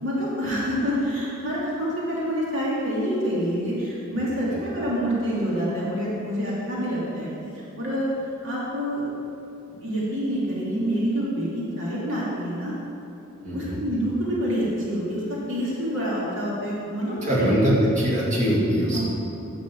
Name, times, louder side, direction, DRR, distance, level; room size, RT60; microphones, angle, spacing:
voice 1, 0.0-7.3 7.8-8.1 8.4-9.0 9.7-12.7 13.5-17.5 18.9-19.0, equal, 60° right, -7 dB, 2.7 m, -27 dB
voice 2, 13.4-13.8 17.2-19.0, equal, 35° right, -5 dB, 2.5 m, -22 dB
10.5 x 6.3 x 7.4 m, 2.7 s
head